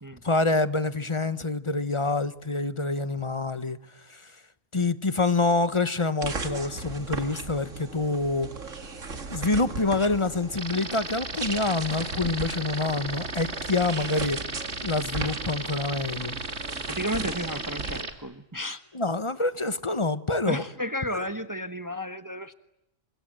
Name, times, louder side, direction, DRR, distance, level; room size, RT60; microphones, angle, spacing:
voice 1, 0.2-3.8 4.1-4.3 4.7-8.5 9.3-14.4 14.8-16.3 18.9-20.6 21.1-21.2, left 3 dB, 25° left, 13 dB, 1.2 m, -26 dB
sound 1, 6.2-18.0, right 3 dB, 90° right, 2.6 m, -37 dB
sound 2, 10.6-18.1, right 3 dB, 60° right, 2.9 m, -35 dB
voice 2, 16.9-18.8 20.4-22.5, equal, 15° right, 10 dB, 1.0 m, -33 dB
29.5 x 26.0 x 7.7 m, 0.82 s
omnidirectional pair, 1.3 m